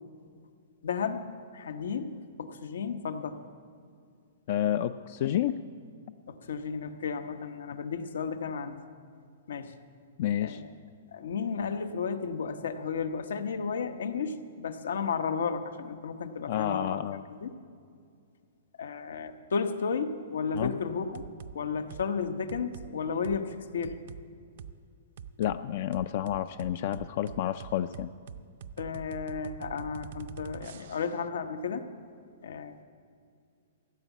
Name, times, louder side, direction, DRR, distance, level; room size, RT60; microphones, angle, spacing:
voice 1, 0.8-1.2 1.5-3.4 6.3-8.8 9.5-9.7 10.4-10.7 11.1-17.0 17.3-17.5 18.8-21.2 21.5-24.0 28.8-31.9 32.4-32.8, left 5 dB, 85° left, 9 dB, 1.0 m, -33 dB
voice 2, 4.5-5.6 10.2-10.6 16.5-17.2 20.5-20.7 25.4-28.1, left 11 dB, 50° left, 12 dB, 0.3 m, -30 dB
sound 1, 20.6-20.8 21.1-21.5 21.9-22.1 22.5-22.9 23.2-23.4 23.8-24.2 24.6-24.7 25.2-25.6 25.9-31.2, right 7 dB, 55° right, 0.5 m, -44 dB
15.0 x 7.2 x 9.2 m, 2.3 s
hypercardioid pair, 160°, 0 cm